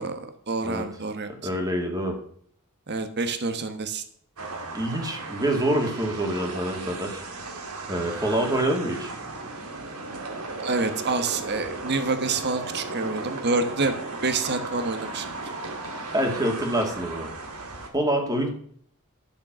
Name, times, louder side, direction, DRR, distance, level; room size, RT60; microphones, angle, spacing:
voice 1, 0.0-1.3 2.9-4.0 10.6-13.9 14.2-15.3, right 3 dB, 50° right, 8 dB, 1.2 m, -27 dB
voice 2, 1.4-2.2 4.7-7.2 7.9-9.1 16.1-17.3 17.9-18.5, right 1 dB, 15° right, 2 dB, 2.2 m, -26 dB
sound 1, 4.4-17.9, right 3 dB, 80° right, 2.0 m, -36 dB
12.0 x 6.8 x 6.1 m, 0.62 s
head